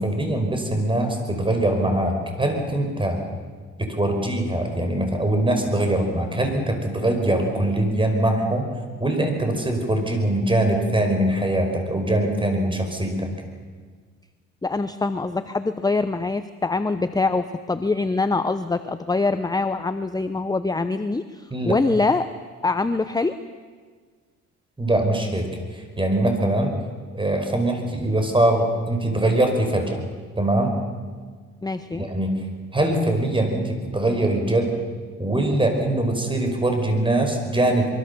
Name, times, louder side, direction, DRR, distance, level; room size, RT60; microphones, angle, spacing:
voice 1, 0.0-3.2 3.8-8.7 9.0-13.3 21.5-21.8 24.8-26.8 27.1-30.0 30.4-30.8 31.9-32.3 32.7-34.8 35.2-37.9, right 1 dB, 15° right, 4 dB, 5.3 m, -22 dB
voice 2, 14.6-22.3 22.6-23.4 31.6-32.1, left 3 dB, 15° left, 11 dB, 0.8 m, -24 dB
24.0 x 23.5 x 7.0 m, 1.5 s
cardioid pair, 90°, 30 cm